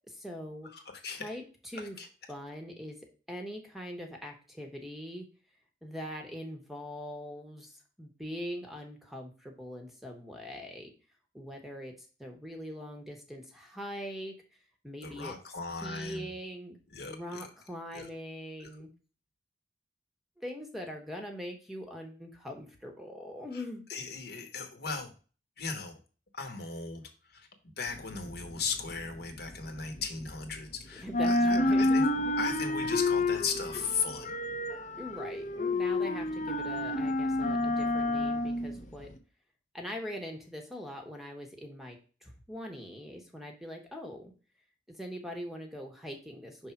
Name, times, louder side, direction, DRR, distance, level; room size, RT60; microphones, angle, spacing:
voice 1, 0.1-0.7 1.2-2.0 2.3-3.0 3.3-5.3 5.8-10.9 11.3-14.3 14.8-15.3 15.8-16.8 17.0-18.9 20.4-23.9 30.9-32.5 35.0-39.1 39.7-44.3 44.9-46.7, equal, ahead, 3 dB, 0.9 m, -42 dB
voice 2, 0.7-1.3 2.0-2.1 15.0-16.3 16.9-17.5 17.9-18.1 18.6-18.7 23.9-25.1 25.6-26.0 26.3-27.0 27.3-27.5 27.8-32.0 32.4-34.3, left 5 dB, 60° left, 5 dB, 1.2 m, -37 dB
sound 1, 27.9-30.7 31.0-39.2, left 2 dB, 40° left, 0.6 m, -30 dB
5.5 x 3.4 x 5.7 m, 0.36 s
head